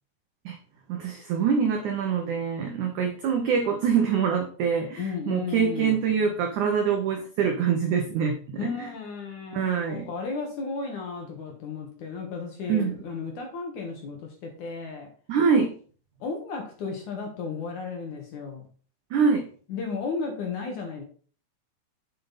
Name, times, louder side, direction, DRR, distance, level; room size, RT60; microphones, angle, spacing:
voice 1, 0.9-8.7 9.5-10.1 12.7-13.0 15.3-15.8 19.1-19.5, right 6 dB, 85° right, 4 dB, 1.7 m, -25 dB
voice 2, 5.0-6.0 8.6-15.1 16.2-18.6 19.7-21.0, left 4 dB, 55° left, 2 dB, 2.4 m, -34 dB
7.7 x 7.5 x 4.1 m, 0.42 s
omnidirectional pair, 5.0 m